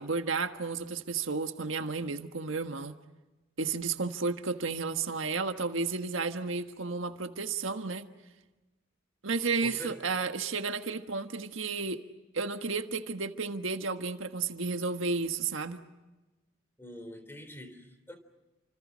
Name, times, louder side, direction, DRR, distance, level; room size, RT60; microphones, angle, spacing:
voice 1, 0.0-3.0 3.6-8.0 9.2-12.0 12.3-15.8, right 4 dB, 75° right, 7 dB, 1.5 m, -32 dB
voice 2, 9.6-9.9 16.8-18.2, equal, 10° left, 8 dB, 3.6 m, -44 dB
30.0 x 26.5 x 6.3 m, 1.1 s
head